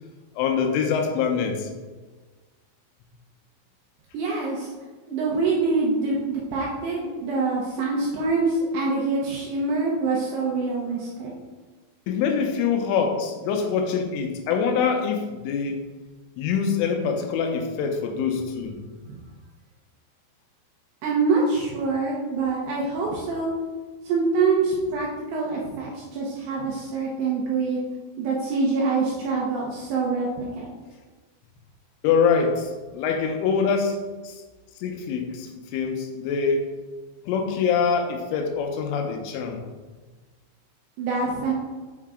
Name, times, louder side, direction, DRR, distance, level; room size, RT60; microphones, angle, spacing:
voice 1, 0.4-1.7 12.1-15.8 16.4-18.7 32.0-34.0 34.2-34.4 34.8-36.6 37.3-39.6, left 6 dB, 80° left, 4 dB, 3.2 m, -24 dB
voice 2, 4.1-4.7 5.1-11.3 19.0-19.2 21.0-23.5 24.0-27.8 28.2-30.7 41.0-41.5, right 4 dB, 75° right, -3 dB, 2.5 m, -25 dB
7.5 x 5.4 x 3.6 m, 1.3 s
omnidirectional pair, 5.8 m